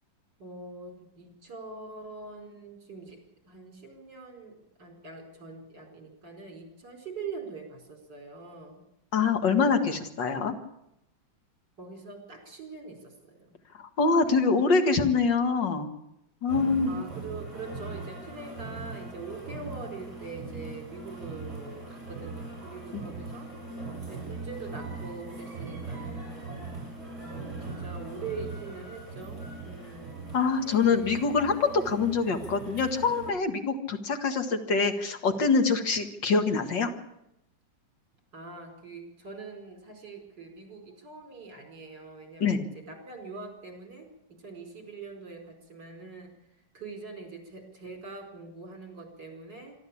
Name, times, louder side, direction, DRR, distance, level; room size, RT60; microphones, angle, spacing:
voice 1, 0.4-3.2 3.5-4.5 4.8-8.8 11.8-13.6 16.9-23.5 24.1-26.5 27.2-30.3 38.3-44.1 44.4-46.3 46.7-49.8, right 4 dB, 65° right, 4 dB, 5.5 m, -43 dB
voice 2, 9.1-10.5 13.7-15.9 16.4-16.9 22.9-23.0 30.3-36.9 42.4-42.6, left 4 dB, 70° left, 6 dB, 2.5 m, -25 dB
sound 1, 16.5-33.3, right 3 dB, 35° right, 8.1 m, -40 dB
25.5 x 12.5 x 8.6 m, 0.85 s
omnidirectional pair, 2.1 m